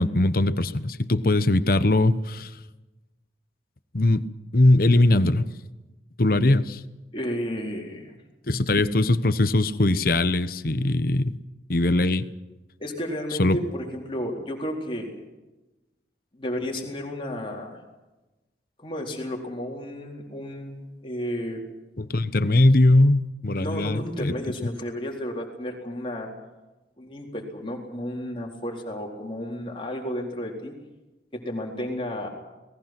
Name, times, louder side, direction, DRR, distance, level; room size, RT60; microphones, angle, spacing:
voice 1, 0.0-2.5 3.9-4.3 4.5-5.5 6.2-6.8 8.5-11.4 11.7-12.3 13.4-13.6 22.0-24.3, left 2 dB, 50° left, 13 dB, 1.1 m, -20 dB
voice 2, 7.1-8.2 12.8-15.2 16.3-17.8 18.8-21.6 23.6-26.3 27.0-30.7 31.3-32.3, equal, 30° left, 0 dB, 4.2 m, -32 dB
30.0 x 19.5 x 6.1 m, 1.1 s
head